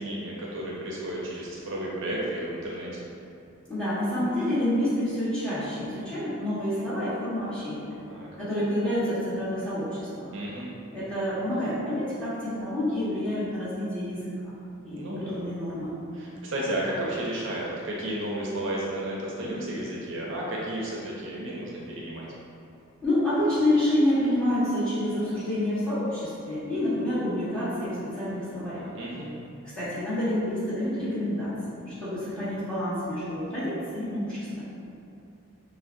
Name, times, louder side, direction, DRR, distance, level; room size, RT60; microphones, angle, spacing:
voice 1, 0.0-3.0 8.1-8.3 10.3-10.7 15.0-15.4 16.1-22.3 28.9-29.3, right 1 dB, 60° right, -5 dB, 0.6 m, -32 dB
voice 2, 3.7-7.9 8.4-10.3 10.9-14.3 14.8-15.9 23.0-28.9 29.8-31.5 31.8-34.6, left 1 dB, 5° left, -14 dB, 1.3 m, -28 dB
5.9 x 2.1 x 2.6 m, 2.7 s
head